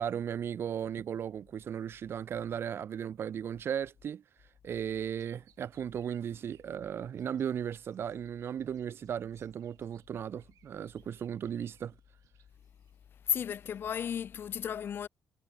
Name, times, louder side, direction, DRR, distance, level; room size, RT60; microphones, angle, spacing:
voice 1, 0.0-4.2 4.6-12.0, right 8 dB, 45° right, 0.6 m, -36 dB
sound 1, 5.1-7.5 7.9-13.9, right 13 dB, 85° right, 7.0 m, -69 dB
voice 2, 13.3-15.1, left 8 dB, 40° left, 0.4 m, -33 dB
cardioid pair, 165°, 6 cm